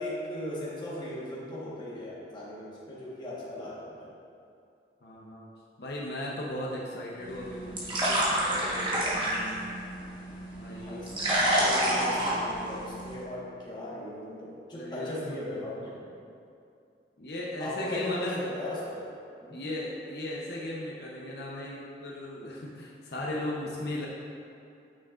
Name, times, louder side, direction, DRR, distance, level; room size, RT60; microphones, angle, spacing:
voice 1, 0.0-4.1 10.7-16.0 17.6-19.1 19.4-19.6, left 1 dB, 25° left, -6 dB, 1.2 m, -38 dB
voice 2, 5.0-5.5 5.8-9.7 10.6-11.2 11.6-12.1 14.7-15.6 17.2-18.4 19.5-24.1, left 1 dB, 65° left, -4 dB, 0.7 m, -37 dB
sound 1, 7.2-13.2, right 1 dB, 25° right, 1.2 m, -29 dB
8.9 x 6.0 x 2.4 m, 2.6 s
head